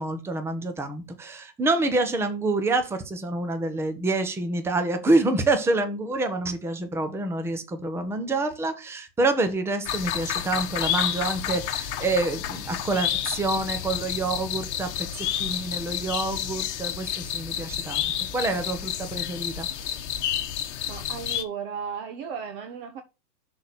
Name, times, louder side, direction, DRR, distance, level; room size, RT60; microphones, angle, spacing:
voice 1, 0.0-18.0 18.3-20.0, right 2 dB, 5° right, 0.9 m, -27 dB
sound 1, 9.9-21.4, left 10 dB, 45° left, 1.3 m, -30 dB
voice 2, 20.9-23.0, right 7 dB, 35° right, 1.0 m, -35 dB
6.4 x 4.2 x 6.2 m
hypercardioid pair, 130°, 49 cm